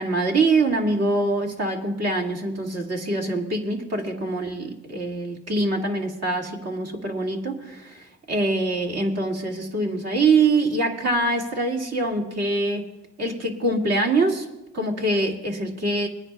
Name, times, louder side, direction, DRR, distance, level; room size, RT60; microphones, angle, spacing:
voice 1, 0.0-12.8 13.2-14.5 14.7-16.1, right 2 dB, 55° right, 1 dB, 2.1 m, -24 dB
24.5 x 9.9 x 2.3 m, 0.99 s
cardioid pair, 90°, 30 cm